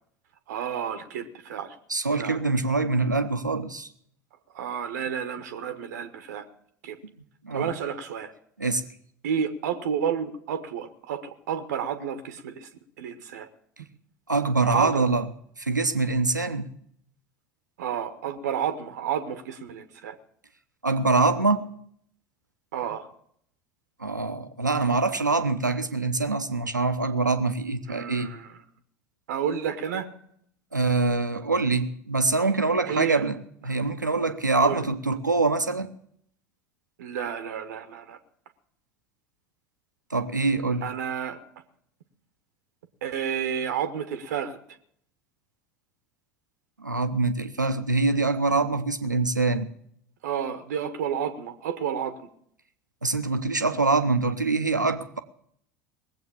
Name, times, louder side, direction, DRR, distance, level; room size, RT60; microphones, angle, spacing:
voice 1, 0.5-1.8 2.2-2.4 4.5-6.4 6.8-7.0 7.5-8.3 9.2-12.7 13.0-13.5 14.7-15.0 17.8-20.2 22.7-23.1 27.9-28.6 29.3-30.1 32.8-33.3 34.6-34.8 37.0-38.2 40.8-41.4 43.0-44.6 50.2-52.2, right 8 dB, 65° right, 1.0 m, -31 dB
voice 2, 1.9-3.9 7.4-7.7 8.6-8.9 14.3-15.3 15.6-16.7 20.8-21.6 24.0-28.3 30.7-33.4 33.6-35.9 40.1-40.9 46.8-49.7 53.0-55.2, right 3 dB, 90° right, 0.9 m, -24 dB
20.0 x 8.0 x 7.0 m
figure-of-eight pair, 70°, 10 cm